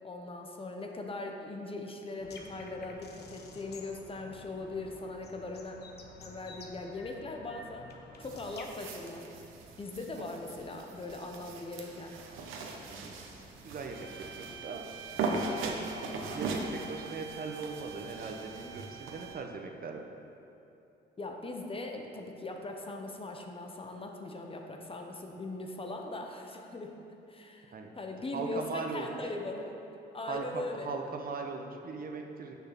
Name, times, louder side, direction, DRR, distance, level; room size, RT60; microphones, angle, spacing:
voice 1, 0.0-5.8 6.2-7.9 8.2-9.4 9.8-12.2 21.2-27.0 27.3-29.7 30.1-31.0, left 2 dB, 30° left, 3 dB, 0.9 m, -40 dB
sound 1, 2.2-8.7, left 3 dB, 55° left, 0.9 m, -51 dB
sound 2, 8.2-19.3, right 3 dB, 85° right, 0.9 m, -40 dB
voice 2, 13.6-14.9 15.2-15.8 16.3-20.1 27.7-27.9 28.3-29.3 30.3-32.5, right 4 dB, 45° right, 3 dB, 0.8 m, -39 dB
sound 3, 13.9-19.6, right 8 dB, 70° right, 0.5 m, -48 dB
7.0 x 6.1 x 5.8 m, 2.8 s
cardioid pair, 90°, 20 cm